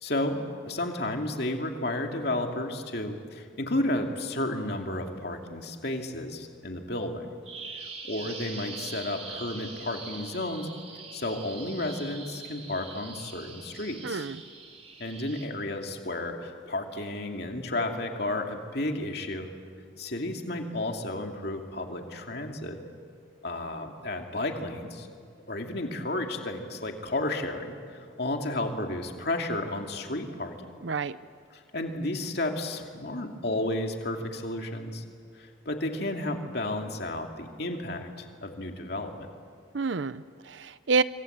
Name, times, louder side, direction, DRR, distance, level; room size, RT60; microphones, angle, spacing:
voice 1, 0.0-7.3 7.7-10.7 11.1-14.3 15.0-19.5 20.0-22.8 23.4-25.1 25.5-30.7 31.5-35.0 35.3-39.3, left 1 dB, 55° left, 3 dB, 2.6 m, -32 dB
Bird vocalization bird call bird song, 7.4-15.4, right 4 dB, 30° right, 3.2 m, -43 dB
voice 2, 14.0-14.4 30.8-31.2 39.7-41.0, right 4 dB, 70° right, 15 dB, 0.6 m, -28 dB
27.0 x 25.0 x 8.1 m, 2.1 s
head